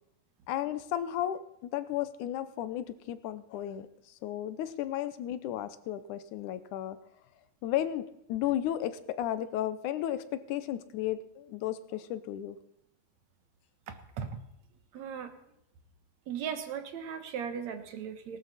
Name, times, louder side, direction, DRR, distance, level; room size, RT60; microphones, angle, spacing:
voice 1, 0.5-3.9 4.2-7.0 7.6-12.6, left 12 dB, 80° left, 13 dB, 2.3 m, -34 dB
voice 2, 13.9-14.4 14.9-15.4 16.3-18.4, right 7 dB, 65° right, 8 dB, 2.4 m, -37 dB
18.5 x 12.5 x 4.2 m, 0.79 s
omnidirectional pair, 3.5 m